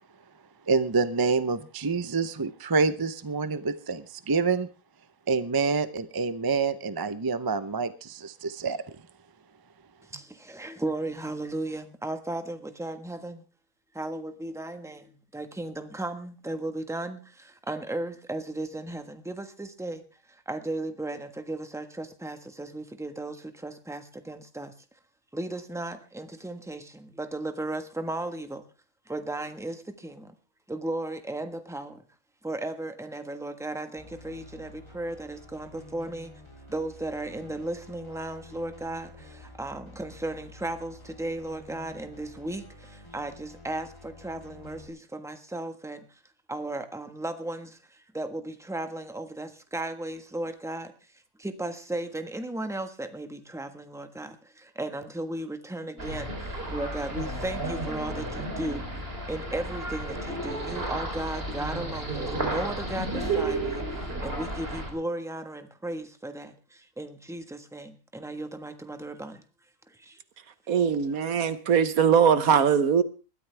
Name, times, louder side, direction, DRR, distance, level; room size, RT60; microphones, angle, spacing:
voice 1, 0.7-4.7 5.3-8.8, right 4 dB, 25° right, 0.5 m, -27 dB
voice 2, 10.1-13.4 13.9-20.0 20.3-24.7 25.3-28.6 29.1-30.3 30.7-32.0 32.4-36.3 36.7-46.2 46.5-50.9 51.4-59.0 59.3-69.4 69.9-70.2, right 2 dB, ahead, 1.2 m, -35 dB
sound 1, 34.0-44.9, left 1 dB, 20° left, 3.2 m, -49 dB
sound 2, 56.0-64.9, right 2 dB, 45° right, 3.9 m, -32 dB
voice 3, 70.7-73.0, right 7 dB, 90° right, 1.5 m, -21 dB
20.5 x 13.5 x 3.4 m
omnidirectional pair, 1.4 m